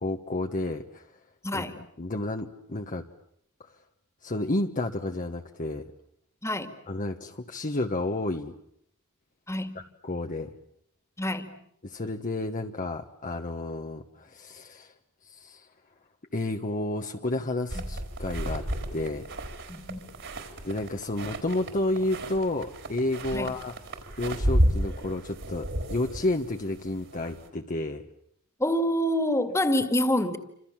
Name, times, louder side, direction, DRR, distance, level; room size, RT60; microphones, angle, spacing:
voice 1, 0.0-1.1 1.5-3.1 3.7-3.8 4.2-5.8 6.9-8.6 9.7-10.5 11.8-14.9 15.2-15.7 16.3-18.6 18.9-19.3 20.4-28.0, left 2 dB, 35° left, 1.2 m, -31 dB
voice 2, 1.4-1.8 6.4-6.7 9.5-9.8 11.2-11.6 19.7-20.0 23.3-23.5 28.6-30.4, left 1 dB, 15° left, 2.1 m, -26 dB
sound 1, 17.7-27.5, equal, 55° right, 4.4 m, -32 dB
28.0 x 26.5 x 7.4 m
head